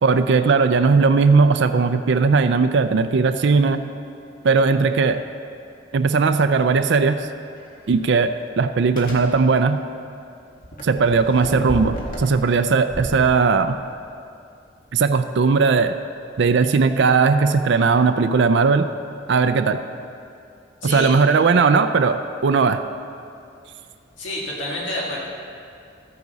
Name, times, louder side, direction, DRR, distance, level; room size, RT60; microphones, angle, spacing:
voice 1, 0.0-3.8 4.4-5.2 5.9-7.3 7.9-9.8 10.8-13.7 14.9-15.9 16.4-18.9 19.3-19.8 20.8-22.8, right 4 dB, 70° right, 9 dB, 0.4 m, -18 dB
sound 1, 7.6-7.7 8.9-9.3 10.6-12.4 12.9-13.9, equal, 50° left, 1.8 m, -33 dB
voice 2, 20.8-21.1 24.2-25.2, left 1 dB, 85° left, -4 dB, 1.8 m, -28 dB
14.0 x 9.6 x 4.0 m, 2.5 s
head